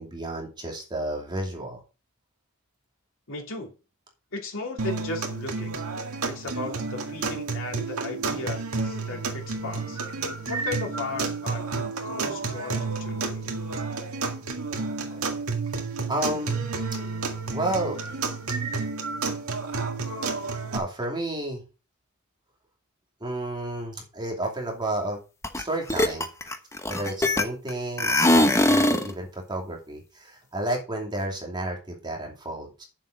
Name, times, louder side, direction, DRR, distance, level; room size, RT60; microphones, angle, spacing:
voice 1, 0.0-1.8 16.1-16.7 17.5-18.1 20.7-21.6 23.2-25.2 25.5-26.3 26.9-32.8, right 1 dB, 20° right, 0 dB, 2.6 m, -31 dB
voice 2, 3.3-3.7 4.3-5.7 6.2-10.0 10.5-13.5 15.1-15.3, left 3 dB, 60° left, 2 dB, 2.9 m, -36 dB
sound 1, 4.8-20.8, right 4 dB, 70° right, 2.0 m, -31 dB
sound 2, 25.4-25.6 25.9-27.7 28.0-29.1, left 1 dB, 15° left, 1.0 m, -21 dB
9.3 x 7.4 x 4.9 m, 0.32 s
head